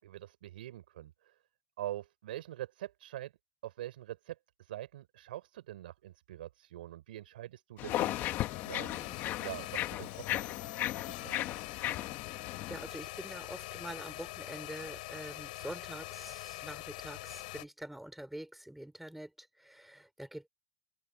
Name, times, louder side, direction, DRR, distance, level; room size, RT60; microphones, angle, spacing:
voice 1, 0.0-1.4 1.8-3.3 3.6-8.1 8.6-11.6, right 13 dB, 85° right, 6.0 m, -44 dB
sound 1, 7.8-12.9, left 14 dB, 40° left, 2.1 m, -36 dB
sound 2, 7.9-17.6, left 20 dB, 70° left, 4.7 m, -44 dB
voice 2, 12.2-20.5, right 1 dB, 5° right, 6.0 m, -46 dB
open air
supercardioid pair, 120°, 5 cm